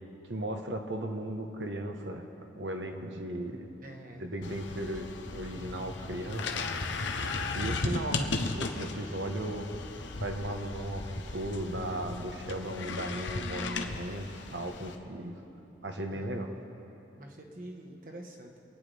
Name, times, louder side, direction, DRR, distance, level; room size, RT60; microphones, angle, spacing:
voice 1, 0.3-2.3 2.6-3.7 4.2-6.6 7.5-9.7 10.2-15.4 15.8-16.5, right 1 dB, 75° right, 4 dB, 1.3 m, -36 dB
voice 2, 3.8-4.2 16.1-16.3 17.1-18.6, right 1 dB, 45° right, 1 dB, 1.4 m, -47 dB
sound 1, 4.4-15.0, left 3 dB, 80° left, 0.9 m, -36 dB
26.5 x 9.6 x 3.5 m, 2.9 s
head